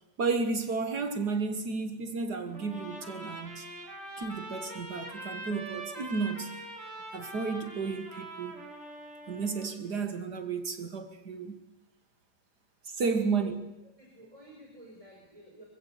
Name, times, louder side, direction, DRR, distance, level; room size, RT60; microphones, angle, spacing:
voice 1, 0.2-3.7 4.2-6.5 7.1-8.6 9.3-11.6 12.8-13.5, right 4 dB, 60° right, 2.2 m, -32 dB
Trumpet, 2.5-9.7, right 1 dB, 40° right, 5.0 m, -43 dB
voice 2, 13.1-13.5 14.0-15.6, right 1 dB, 15° right, 5.3 m, -50 dB
25.5 x 15.5 x 8.3 m
omnidirectional pair, 2.0 m